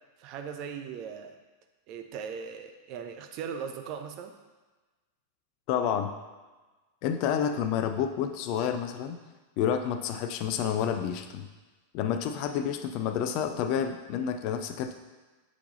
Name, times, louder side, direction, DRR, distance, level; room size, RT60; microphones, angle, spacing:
voice 1, 0.2-1.3 1.9-4.3, right 7 dB, 40° right, 6 dB, 0.6 m, -39 dB
voice 2, 5.7-6.1 7.0-9.2 9.6-11.5 11.9-14.9, left 8 dB, 45° left, 7 dB, 0.5 m, -29 dB
7.1 x 4.6 x 4.0 m, 1.2 s
figure-of-eight pair, 90°, 0 cm